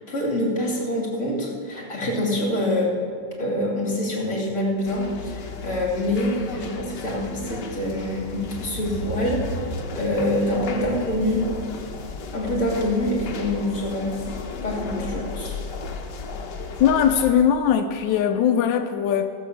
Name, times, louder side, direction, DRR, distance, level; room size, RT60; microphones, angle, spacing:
voice 1, 0.0-2.9 3.4-9.4 9.9-11.5 12.3-14.4 14.6-15.5, left 1 dB, 45° left, -3 dB, 3.1 m, -25 dB
sound 1, 2.7-2.8 3.0-13.3 13.6-13.7, equal, 75° right, 2.4 m, -39 dB
sound 2, 4.9-17.3, left 4 dB, 70° left, 1.6 m, -35 dB
voice 2, 16.8-19.3, left 8 dB, 90° left, 6 dB, 1.4 m, -20 dB
17.5 x 6.3 x 7.1 m, 2.3 s
omnidirectional pair, 1.9 m